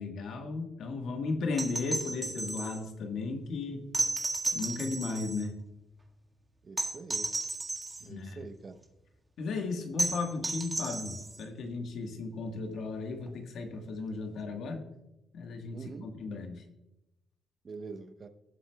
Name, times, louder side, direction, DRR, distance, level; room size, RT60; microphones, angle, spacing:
voice 1, 0.0-3.8 4.5-5.6 8.0-8.4 9.4-14.8 15.3-16.6, left 3 dB, 70° left, 1.4 m, -35 dB
sound 1, 1.5-2.8 3.9-5.5 6.8-8.0 10.0-11.4 13.3-13.4, right 2 dB, 20° right, 1.8 m, -33 dB
voice 2, 6.6-7.4 8.0-8.8 15.7-16.1 17.6-18.3, right 4 dB, 40° right, 0.8 m, -44 dB
17.5 x 7.6 x 2.3 m
cardioid pair, 90°, 0 cm